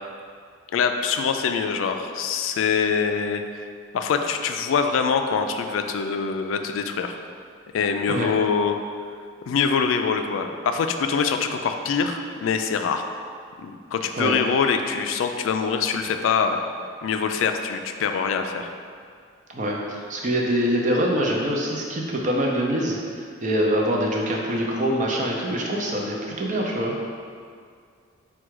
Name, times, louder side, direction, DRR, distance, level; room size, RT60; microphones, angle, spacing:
voice 1, 0.7-3.6 3.9-7.2 7.7-8.8 9.5-13.0 13.6-16.6 17.0-18.7, left 6 dB, 85° left, 6 dB, 0.3 m, -24 dB
voice 2, 19.5-27.0, equal, 40° right, -1 dB, 0.5 m, -24 dB
4.7 x 2.3 x 4.5 m, 2.1 s
head